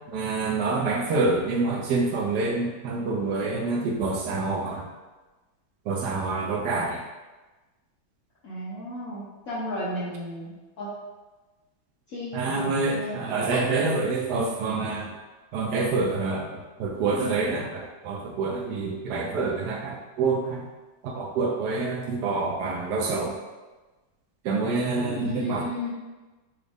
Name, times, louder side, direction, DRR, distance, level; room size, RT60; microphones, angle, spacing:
voice 1, 0.1-4.9 5.9-7.0 12.3-15.1 15.5-16.5 16.8-20.6 21.0-23.4 24.4-25.7, right 3 dB, 70° right, 1 dB, 1.0 m, -27 dB
voice 2, 8.4-11.0 12.1-13.2 13.5-13.6 25.2-25.9, left 1 dB, 55° left, -10 dB, 1.3 m, -34 dB
6.3 x 2.4 x 3.4 m, 1.2 s
omnidirectional pair, 2.1 m